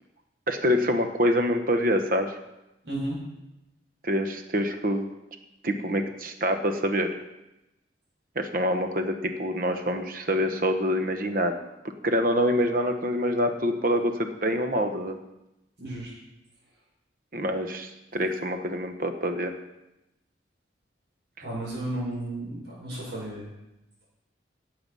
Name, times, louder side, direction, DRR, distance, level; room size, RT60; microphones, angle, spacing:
voice 1, 0.5-2.3 4.0-5.1 5.6-7.1 8.3-11.6 12.0-15.2 17.3-19.5, equal, 50° right, 7 dB, 1.2 m, -26 dB
voice 2, 2.8-3.2 15.8-16.1 21.4-23.5, right 1 dB, 70° right, -5 dB, 5.5 m, -33 dB
16.5 x 7.9 x 5.5 m, 0.94 s
head